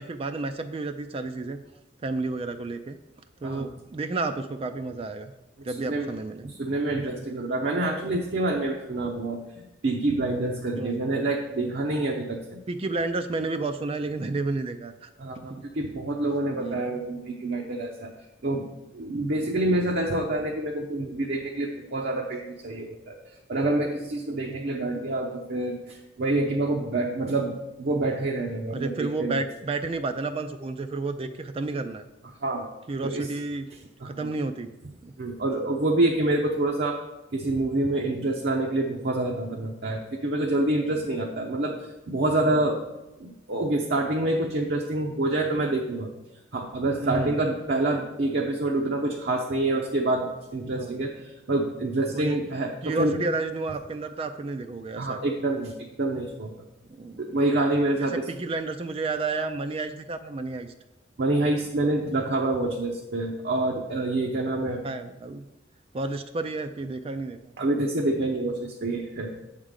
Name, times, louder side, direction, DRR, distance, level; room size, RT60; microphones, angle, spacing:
voice 1, 0.0-1.6 2.0-3.0 3.4-5.3 5.6-6.5 10.8-11.1 12.7-15.1 15.5-15.6 16.5-16.8 28.7-32.0 32.9-33.7 34.0-34.7 35.0-35.1 42.5-42.6 47.0-47.4 50.7-51.1 52.1-52.4 52.8-55.2 56.9-57.4 58.0-60.7 64.8-65.4 65.9-67.4, right 3 dB, 30° right, 8 dB, 0.4 m, -31 dB
voice 2, 6.4-12.6 15.2-18.1 18.4-18.7 18.9-23.2 23.5-29.4 32.4-32.6 33.0-33.3 34.0-34.3 35.2-37.0 37.3-42.8 43.2-46.1 46.5-53.2 55.0-55.7 56.0-56.5 57.2-58.2 61.2-64.8 67.6-69.3, right 2 dB, 60° right, 0 dB, 0.7 m, -27 dB
8.1 x 3.8 x 6.4 m, 0.96 s
head